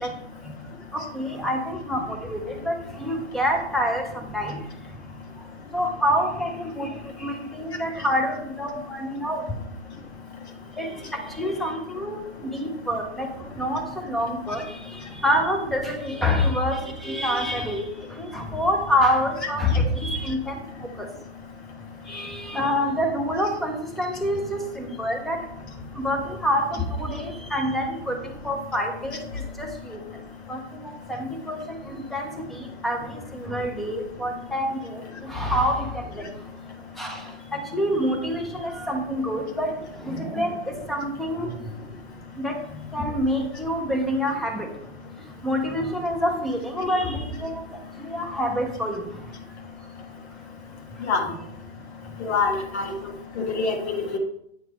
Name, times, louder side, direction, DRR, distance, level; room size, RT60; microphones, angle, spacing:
voice 1, 1.1-4.6 5.7-6.9 7.2-9.4 10.8-12.2 12.5-13.3 13.6-13.8 14.1-14.7 15.2-17.8 18.2-20.5 21.0-21.1 22.1-25.4 26.0-28.2 28.4-30.0 30.5-30.6 31.1-32.6 32.8-35.9 36.2-36.3 37.0-37.2 37.5-39.7 40.0-41.5 42.4-42.6 42.9-44.7 45.4-47.6 48.0-49.0 51.2-51.3, equal, ahead, 2 dB, 0.4 m, -26 dB
voice 2, 52.2-52.9 53.4-54.2, left 4 dB, 70° left, 3 dB, 1.5 m, -25 dB
8.2 x 3.1 x 4.7 m, 0.76 s
hypercardioid pair, 125°, 34 cm